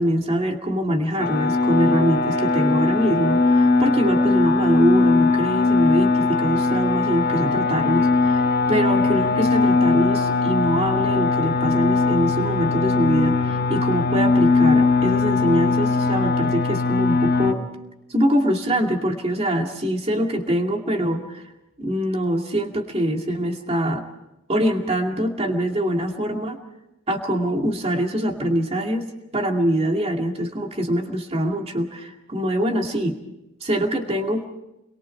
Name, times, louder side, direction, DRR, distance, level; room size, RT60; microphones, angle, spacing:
voice 1, 0.0-8.4 8.7-17.7 18.1-21.4 21.8-24.0 24.5-26.6 27.1-33.2 33.6-34.4, equal, 30° right, 3 dB, 2.4 m, -24 dB
sound 1, 1.2-17.5, left 3 dB, 40° left, 1.5 m, -20 dB
30.0 x 22.5 x 4.6 m, 0.91 s
head